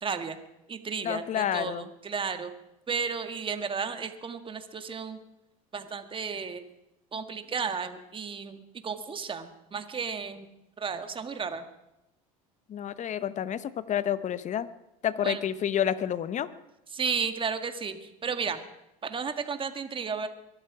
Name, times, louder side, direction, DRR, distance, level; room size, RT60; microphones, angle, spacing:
voice 1, 0.0-0.4 0.7-2.6 2.9-5.2 5.7-6.6 7.1-10.5 10.8-11.6 15.2-15.4 16.9-18.6 19.0-20.3, right 5 dB, 25° right, 8 dB, 1.8 m, -33 dB
voice 2, 1.0-1.9 12.7-14.7 15.0-16.5, left 10 dB, 40° left, 15 dB, 1.0 m, -29 dB
22.5 x 12.5 x 4.9 m, 0.88 s
hypercardioid pair, 85°, 19 cm